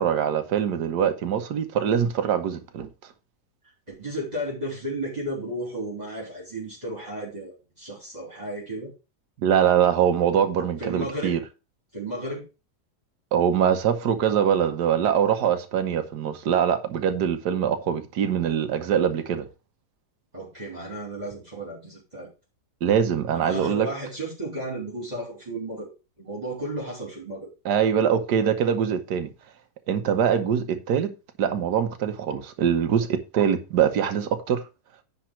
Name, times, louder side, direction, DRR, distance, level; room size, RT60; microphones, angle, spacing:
voice 1, 0.0-2.9 9.4-11.4 13.3-19.4 22.8-23.9 27.6-29.3 29.9-34.6, right 8 dB, 85° right, 1.5 m, -23 dB
voice 2, 3.9-8.9 10.8-11.4 11.9-12.4 20.3-22.3 23.3-25.9 26.2-27.5, right 1 dB, 25° right, 3.5 m, -33 dB
10.0 x 4.2 x 6.0 m
omnidirectional pair, 1.7 m